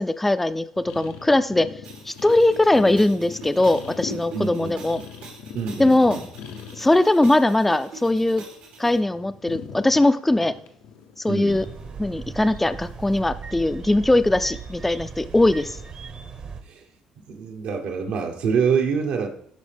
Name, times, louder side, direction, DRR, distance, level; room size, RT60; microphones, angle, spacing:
voice 1, 0.0-1.7 2.1-5.0 5.8-6.2 6.8-8.4 8.8-10.5 11.2-11.6 12.0-15.8, left 2 dB, 10° left, 13 dB, 0.3 m, -20 dB
sound 1, 0.8-7.1 7.4-8.5 8.7-12.3 13.1-13.4, left 7 dB, 90° left, 0.7 m, -40 dB
sound 2, 1.8-9.0, right 5 dB, 85° right, 1.9 m, -43 dB
voice 2, 4.3-4.8 5.5-6.2 11.3-11.6 16.7-16.8 17.3-19.3, right 6 dB, 70° right, 4 dB, 1.0 m, -25 dB
sound 3, 11.5-16.6, right 5 dB, 45° right, 0.8 m, -38 dB
11.5 x 4.2 x 3.4 m, 0.64 s
cardioid pair, 95°, 2 cm